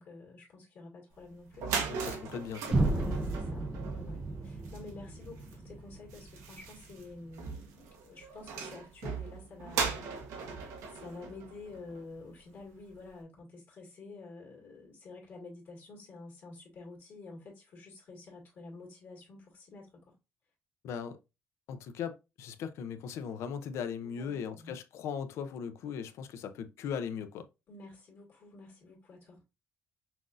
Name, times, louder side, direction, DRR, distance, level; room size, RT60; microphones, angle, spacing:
voice 1, 0.0-1.7 2.8-10.1 10.9-20.1 24.0-24.7 27.7-29.4, left 3 dB, 50° left, 1.9 m, -49 dB
sound 1, 1.2-1.3 1.5-12.3, right 5 dB, 90° right, 1.0 m, -39 dB
voice 2, 1.9-2.8 20.8-21.2 21.7-27.5, left 7 dB, 70° left, 0.5 m, -38 dB
sound 2, 2.7-6.7, right 2 dB, 15° right, 0.4 m, -33 dB
5.7 x 2.5 x 2.4 m
cardioid pair, 150°, 5 cm